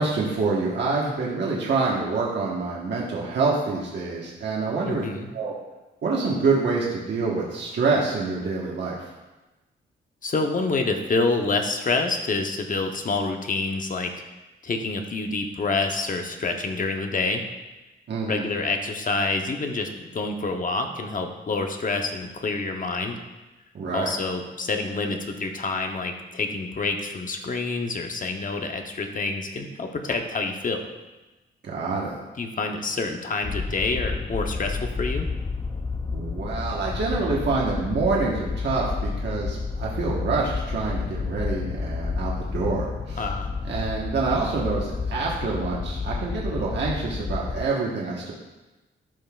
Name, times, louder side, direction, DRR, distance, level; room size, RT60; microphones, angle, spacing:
voice 1, 0.0-5.0 5.3-5.5 6.0-9.0 18.1-18.5 23.7-24.1 31.6-32.2 36.1-43.2 43.6-48.3, right 4 dB, 60° right, -4 dB, 1.3 m, -26 dB
voice 2, 4.8-5.3 10.2-14.1 14.6-17.4 18.3-23.2 23.9-30.9 32.4-35.3 43.2-43.5, left 3 dB, 40° left, 4 dB, 0.9 m, -27 dB
sound 1, 33.4-47.7, left 4 dB, 20° left, 0.4 m, -30 dB
12.0 x 5.5 x 2.4 m, 1.1 s
cardioid pair, 95°, 20 cm